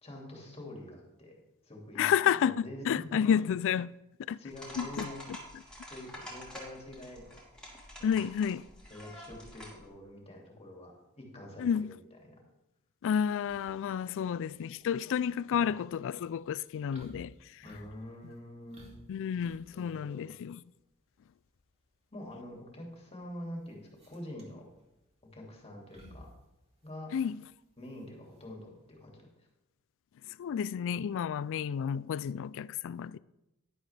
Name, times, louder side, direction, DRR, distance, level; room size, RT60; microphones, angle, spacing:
voice 1, 0.0-1.3 1.6-3.4 4.4-5.2 5.9-7.4 8.0-8.1 8.9-12.4 14.1-14.3 15.5-15.7 17.6-18.9 19.7-20.3 22.1-24.7 25.3-26.3 26.8-27.1 27.8-29.5, left 1 dB, 30° left, 2.4 m, -46 dB
voice 2, 2.0-3.9 4.3-4.4 4.8-5.1 8.0-8.6 11.6-11.9 13.0-17.3 19.1-20.6 27.1-27.4 30.4-33.2, left 8 dB, 60° left, 0.3 m, -30 dB
sound 1, 4.5-9.8, equal, 5° left, 2.5 m, -47 dB
sound 2, 13.5-29.0, equal, 30° right, 2.4 m, -59 dB
11.0 x 10.5 x 3.3 m
head